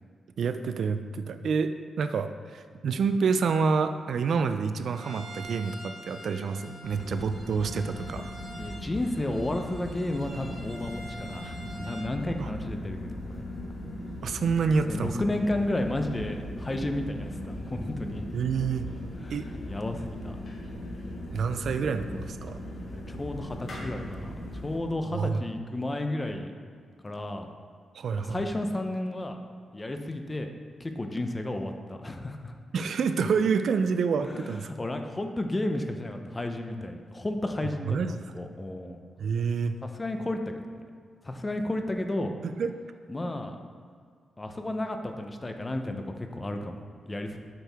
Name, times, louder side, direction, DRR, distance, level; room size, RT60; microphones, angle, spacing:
voice 1, 0.4-1.7 2.0-8.3 12.4-12.5 14.2-15.1 18.3-18.8 19.3-19.5 21.3-22.6 25.0-25.4 27.9-28.4 32.7-34.7 37.6-38.1 39.2-39.8 42.4-42.7, right 5 dB, 65° right, 9 dB, 0.4 m, -28 dB
Bowed string instrument, 4.9-12.1, right 1 dB, 50° right, 1.9 m, -46 dB
sound 1, 6.8-24.8, left 1 dB, 55° left, 1.6 m, -39 dB
voice 2, 8.6-13.4 14.9-18.3 19.2-20.4 22.9-24.3 24.6-26.5 27.0-27.5 28.1-29.4 29.7-30.5 30.8-32.5 34.2-39.0 39.8-40.8 41.2-42.3 43.1-43.6 44.4-47.4, left 1 dB, 20° left, 5 dB, 0.6 m, -32 dB
8.1 x 6.1 x 3.5 m, 2.1 s
wide cardioid pair, 130°, 0 cm